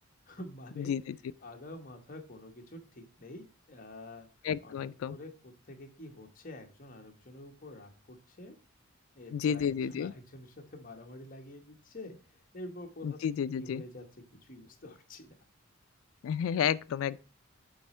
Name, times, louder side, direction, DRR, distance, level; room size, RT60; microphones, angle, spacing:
voice 1, 0.3-0.9 1.4-4.3 4.6-8.6 9.1-12.2 12.5-13.2 13.6-14.0 14.4-15.3, left 1 dB, 40° left, 1.2 m, -47 dB
voice 2, 0.8-1.1 4.4-5.2 9.3-10.1 13.0-13.8 16.2-17.2, left 8 dB, 75° left, 0.3 m, -31 dB
7.9 x 4.2 x 4.3 m
head